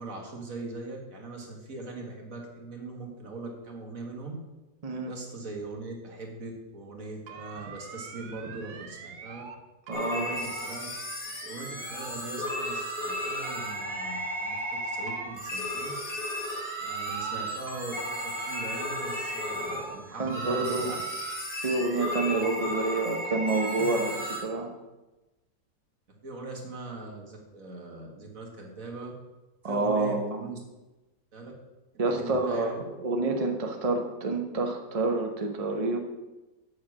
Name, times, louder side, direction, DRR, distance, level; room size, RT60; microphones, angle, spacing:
voice 1, 0.0-4.4 5.1-9.4 10.1-10.9 11.4-15.9 16.8-21.0 22.4-22.5 23.7-24.1 26.2-29.1 29.6-30.6 31.3-31.5 32.2-32.8, right 2 dB, 50° right, 0 dB, 2.1 m, -40 dB
voice 2, 4.8-5.1 9.9-10.3 20.2-20.9 21.6-24.1 24.4-24.7 29.6-30.4 32.0-36.0, right 3 dB, 30° right, 3 dB, 0.7 m, -28 dB
sound 1, 7.3-9.6 9.9-12.2 12.5-14.8 15.1-17.4 17.7-20.0 20.3-22.6, right 6 dB, 70° right, 1.4 m, -45 dB
sound 2, 9.9-24.4, equal, 70° left, 3.3 m, -34 dB
8.2 x 6.6 x 6.1 m, 1.1 s
omnidirectional pair, 1.9 m